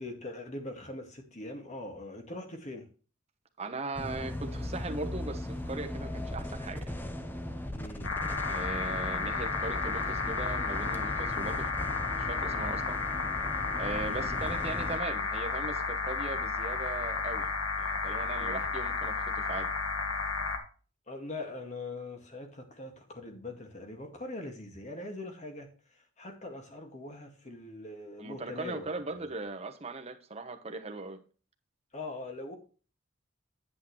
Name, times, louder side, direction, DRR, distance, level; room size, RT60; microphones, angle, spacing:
voice 1, 0.0-2.8 7.7-8.1 12.5-12.8 14.0-14.3 18.3-18.6 21.1-28.9 29.2-29.3 31.9-32.6, left 2 dB, 35° left, 2.0 m, -42 dB
voice 2, 3.6-7.0 8.5-11.7 12.2-13.0 13.8-17.5 17.8-19.7 28.2-31.2, right 3 dB, 30° right, 1.1 m, -39 dB
sound 1, 3.9-15.0, left 1 dB, 10° left, 0.8 m, -38 dB
sound 2, 8.0-20.6, left 4 dB, 80° left, 1.7 m, -32 dB
9.2 x 8.4 x 3.2 m
head